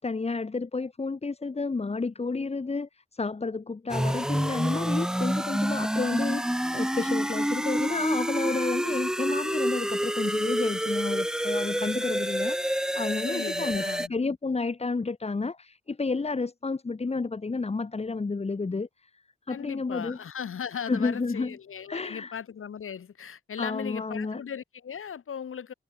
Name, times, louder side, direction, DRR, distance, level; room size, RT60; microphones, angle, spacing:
voice 1, 0.0-19.1 19.5-20.2 20.9-21.6 21.9-22.4 23.6-24.4, left 3 dB, 30° left, 1.1 m, -31 dB
sound 1, 3.9-14.1, equal, 5° right, 0.7 m, -28 dB
voice 2, 13.3-14.1 19.5-25.7, left 7 dB, 80° left, 1.0 m, -37 dB
wide cardioid pair, 150°, 21 cm